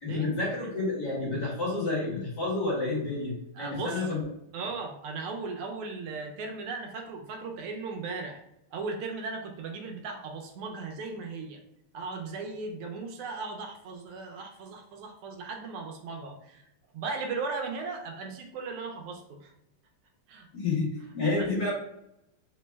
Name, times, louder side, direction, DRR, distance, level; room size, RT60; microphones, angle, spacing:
voice 1, 0.0-4.2 20.5-21.7, left 3 dB, 50° left, -5 dB, 1.7 m, -30 dB
voice 2, 3.5-4.1 4.5-8.4 8.7-11.6 11.9-16.6 16.9-19.5 20.3-20.5 21.3-21.5, right 4 dB, 80° right, 3 dB, 1.6 m, -37 dB
4.4 x 2.1 x 3.3 m, 0.78 s
omnidirectional pair, 2.4 m